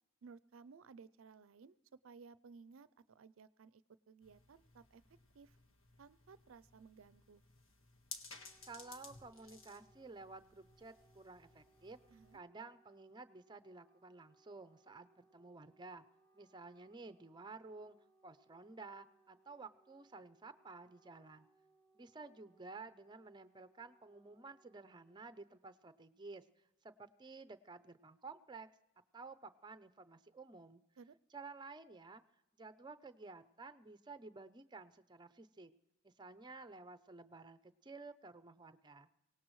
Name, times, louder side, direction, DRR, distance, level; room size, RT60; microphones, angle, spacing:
voice 1, 0.2-1.8 2.0-5.0 5.3-5.6 6.0-7.4 12.1-12.4 31.0-31.1, right 5 dB, 70° right, 16 dB, 0.5 m, -58 dB
sound 1, 4.2-12.4, left 4 dB, 70° left, 1.5 m, -57 dB
Wind instrument woodwind instrument, 8.2-25.6, right 2 dB, 15° left, 1.1 m, -73 dB
voice 2, 8.7-12.0 12.3-16.0 16.3-18.0 18.2-21.5 21.9-26.5 26.8-28.7 29.1-30.8 31.3-32.2 32.5-35.7 36.0-39.1, right 3 dB, 20° right, 12 dB, 0.6 m, -53 dB
24.5 x 18.0 x 3.2 m, 0.92 s
head